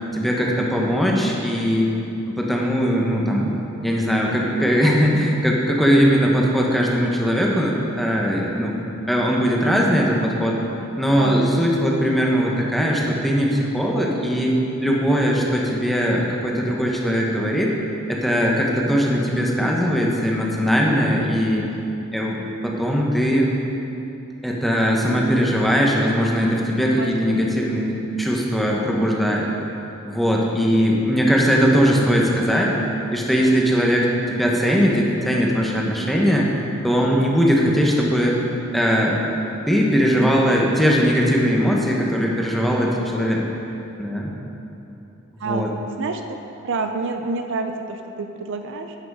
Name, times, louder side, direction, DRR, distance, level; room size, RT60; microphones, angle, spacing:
voice 1, 0.1-1.9 2.3-8.8 9.1-10.6 11.0-14.5 14.8-17.7 18.1-21.6 22.1-23.5 24.4-29.5 30.0-32.7 33.1-36.5 36.8-38.4 38.7-39.2 39.7-43.4 44.0-44.3 45.4-45.7, equal, ahead, -2 dB, 1.0 m, -20 dB
voice 2, 11.2-11.5 27.0-27.4 45.4-45.7 46.0-46.4 46.6-49.0, right 3 dB, 60° right, 6 dB, 0.5 m, -28 dB
11.5 x 6.1 x 4.8 m, 2.9 s
head